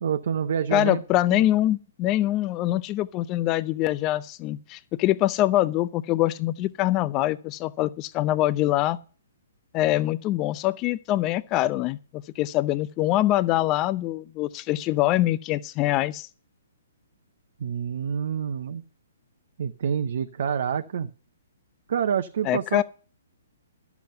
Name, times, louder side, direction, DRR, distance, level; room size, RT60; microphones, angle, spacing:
voice 1, 0.0-1.0 1.3-1.4 17.6-18.8 19.6-21.1 21.9-22.8, right 8 dB, 60° right, 0.7 m, -27 dB
voice 2, 0.7-9.0 9.7-16.3 22.4-22.8, left 15 dB, 30° left, 0.6 m, -24 dB
12.0 x 7.2 x 6.7 m
figure-of-eight pair, 125°, 0 cm